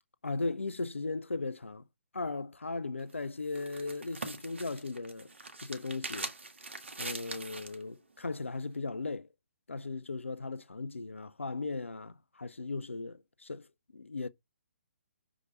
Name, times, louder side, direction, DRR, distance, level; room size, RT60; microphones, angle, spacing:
voice 1, 0.2-1.8 2.1-5.3 5.6-6.3 7.0-9.3 9.7-13.7 13.9-14.3, left 3 dB, 75° left, 0.6 m, -37 dB
sound 1, 3.0-7.8, right 3 dB, 70° right, 1.7 m, -42 dB
6.5 x 4.9 x 3.9 m
figure-of-eight pair, 135°, 7 cm